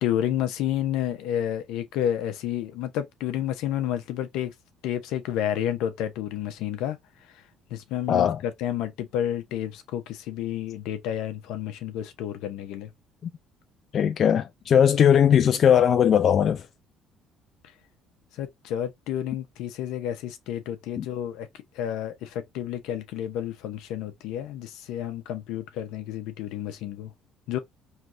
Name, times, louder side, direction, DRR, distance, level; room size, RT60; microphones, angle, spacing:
voice 1, 0.0-4.5 4.8-7.0 7.7-12.9 18.3-21.5 21.7-27.1 27.5-27.6, left 11 dB, 80° left, 0.8 m, -30 dB
voice 2, 8.1-8.4 13.9-16.6 21.0-21.1, left 8 dB, 50° left, 0.4 m, -19 dB
4.6 x 3.3 x 2.6 m
supercardioid pair, 90°, 0 cm